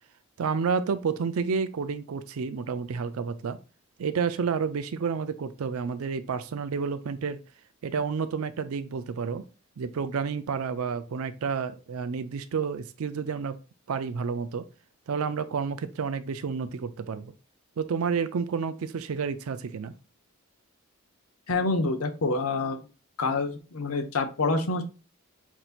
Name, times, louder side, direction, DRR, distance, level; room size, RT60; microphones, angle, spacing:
voice 1, 0.4-3.6 4.0-7.4 7.8-9.5 9.8-13.6 13.9-14.6 15.1-17.3 17.8-19.9, right 5 dB, 75° right, 0.4 m, -30 dB
voice 2, 21.5-22.8 23.2-24.8, left 3 dB, 80° left, 0.7 m, -27 dB
5.9 x 2.7 x 2.4 m
head